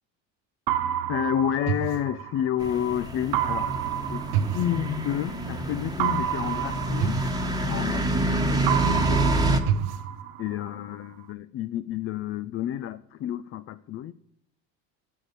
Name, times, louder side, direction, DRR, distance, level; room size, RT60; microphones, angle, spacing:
sound 1, 0.7-2.7 3.3-5.4 6.0-8.3 8.7-10.7, right 10 dB, 70° right, 0.7 m, -29 dB
voice 1, 1.1-4.2 4.5-7.2 7.6-9.3 10.4-14.1, left 11 dB, 40° left, 13 dB, 0.4 m, -30 dB
sound 2, 2.6-9.6, right 1 dB, 10° right, 1.2 m, -27 dB
7.4 x 7.1 x 8.0 m, 0.76 s
supercardioid pair, 120°, 35 cm